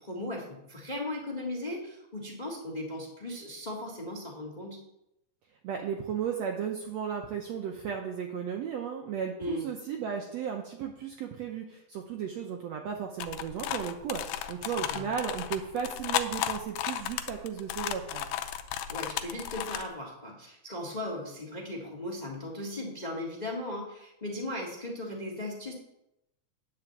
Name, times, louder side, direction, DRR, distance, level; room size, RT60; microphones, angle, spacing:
voice 1, 0.0-4.8 9.4-9.7 14.7-15.1 18.9-25.7, left 1 dB, 55° left, -1 dB, 0.4 m, -37 dB
voice 2, 5.6-18.3, right 8 dB, 90° right, 2 dB, 1.5 m, -35 dB
sound 1, 13.2-19.9, left 11 dB, 85° left, 2.4 m, -34 dB
9.3 x 5.0 x 7.9 m, 0.85 s
omnidirectional pair, 4.0 m